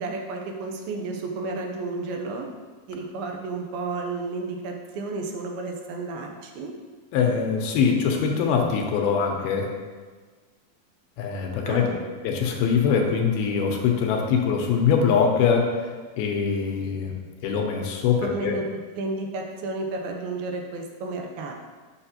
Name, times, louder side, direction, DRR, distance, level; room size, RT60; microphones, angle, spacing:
voice 1, 0.0-2.5 2.9-6.7 11.6-12.1 18.2-18.6 19.0-21.5, right 3 dB, 80° right, 2 dB, 2.6 m, -32 dB
voice 2, 7.1-9.7 11.2-11.9 12.2-15.9 16.2-17.1 17.4-18.5, left 6 dB, 85° left, 2 dB, 2.7 m, -23 dB
8.9 x 5.9 x 2.8 m, 1.4 s
omnidirectional pair, 4.3 m